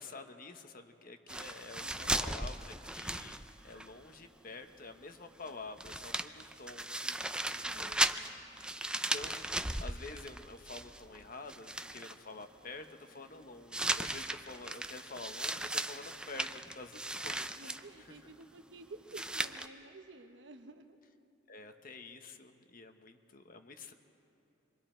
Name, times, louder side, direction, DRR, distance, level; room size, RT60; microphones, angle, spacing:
voice 1, 0.0-8.1 8.5-8.7 9.1-9.5 9.7-17.5 21.5-23.9, left 3 dB, 50° left, 6 dB, 1.0 m, -49 dB
sound 1, 1.3-3.9 4.1-4.2 5.5-5.6 5.8-11.2 11.5-12.2 13.7-17.8 19.1-19.7, right 1 dB, 5° right, 0.5 m, -36 dB
voice 2, 1.8-2.5 7.3-8.3 17.6-21.0, right 2 dB, 75° right, 7 dB, 1.1 m, -53 dB
27.5 x 23.0 x 4.5 m, 2.9 s
head